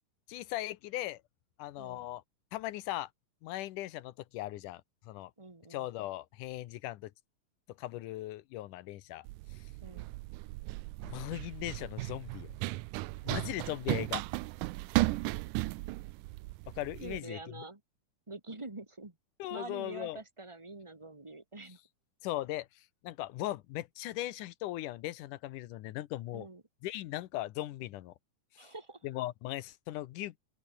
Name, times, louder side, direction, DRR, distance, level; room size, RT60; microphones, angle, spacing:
voice 1, 0.3-1.2 1.6-2.2 2.5-3.1 3.4-5.3 5.7-7.1 7.8-9.3 11.0-12.5 13.2-14.2 16.8-17.4 19.4-20.2 22.2-26.5 26.8-28.1 28.5-28.7 29.0-30.4, left 15 dB, 75° left, 2.4 m, -38 dB
voice 2, 5.4-5.9 9.8-10.1 17.0-17.8 18.3-19.1 19.5-21.8 26.3-26.6 28.6-29.1, right 2 dB, 10° right, 2.0 m, -46 dB
Run, 9.3-17.2, right 20 dB, 80° right, 2.1 m, -36 dB
open air
omnidirectional pair, 3.8 m